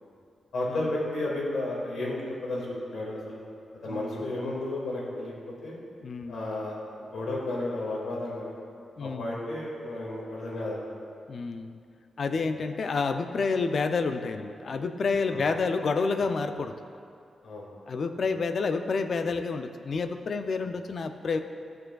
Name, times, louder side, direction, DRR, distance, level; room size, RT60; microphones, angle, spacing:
voice 1, 0.5-3.4 3.8-5.8 6.3-8.5 9.0-10.9 12.3-12.4 15.3-15.5 17.4-17.7 20.6-20.7, left 2 dB, 70° left, -4 dB, 1.9 m, -33 dB
voice 2, 6.0-6.4 9.0-9.3 11.3-11.8 12.2-16.7 17.9-21.4, left 4 dB, 45° left, 8 dB, 0.3 m, -29 dB
13.0 x 6.4 x 2.3 m, 2.4 s
wide cardioid pair, 170°, 0 cm